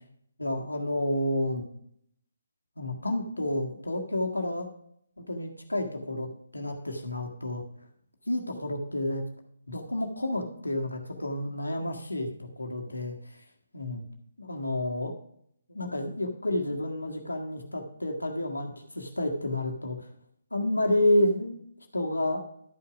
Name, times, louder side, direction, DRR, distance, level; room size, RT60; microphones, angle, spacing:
voice 1, 0.4-1.6 2.8-4.7 5.2-7.6 8.3-9.2 9.7-13.2 13.7-14.0 14.4-15.1 15.7-20.1 20.5-21.6 21.9-22.4, left 1 dB, 90° left, 3 dB, 1.7 m, -30 dB
12.0 x 5.7 x 5.1 m, 0.69 s
figure-of-eight pair, 145°, 0 cm